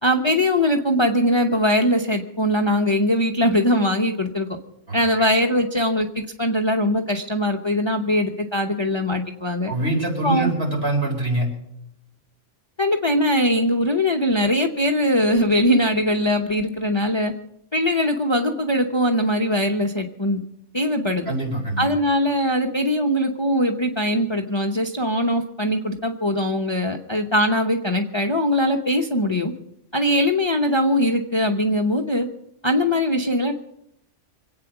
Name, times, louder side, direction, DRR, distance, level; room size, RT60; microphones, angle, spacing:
voice 1, 0.0-4.5 4.9-9.7 10.2-10.5 12.8-17.3 17.7-20.4 20.7-21.3 21.8-29.5 29.9-32.3 32.6-33.5, left 1 dB, 25° left, 4 dB, 0.9 m, -21 dB
voice 2, 4.9-5.3 9.7-11.5 21.3-21.9, right 2 dB, 55° right, 0 dB, 4.8 m, -24 dB
25.5 x 8.8 x 5.9 m, 0.77 s
omnidirectional pair, 1.3 m